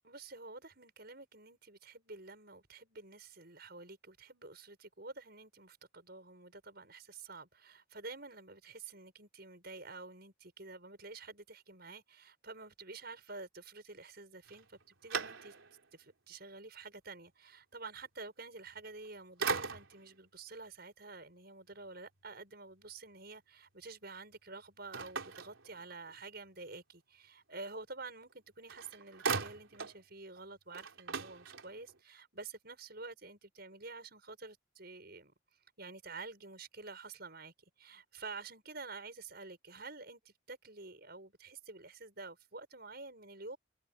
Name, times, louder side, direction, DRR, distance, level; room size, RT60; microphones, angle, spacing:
voice 1, 0.0-15.5 15.9-35.3 35.8-43.6, right 3 dB, 50° right, 7.5 m, -49 dB
sound 1, 14.5-15.9 16.4-16.5 18.8-19.1 19.4-20.2 24.9-26.2 28.3-28.4 28.7-30.0 30.4-30.5 30.7-32.0, right 5 dB, 80° right, 3.7 m, -39 dB
head